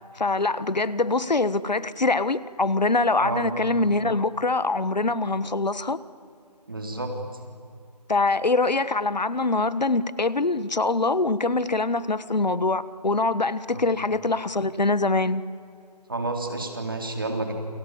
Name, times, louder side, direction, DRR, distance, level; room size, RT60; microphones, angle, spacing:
voice 1, 0.2-6.0 8.1-15.4, left 3 dB, 85° left, 16 dB, 1.5 m, -24 dB
voice 2, 3.2-3.5 6.7-7.1 13.7-13.8 16.1-17.5, right 2 dB, 30° right, 4 dB, 3.6 m, -30 dB
29.5 x 24.0 x 7.6 m, 2.4 s
figure-of-eight pair, 180°, 21 cm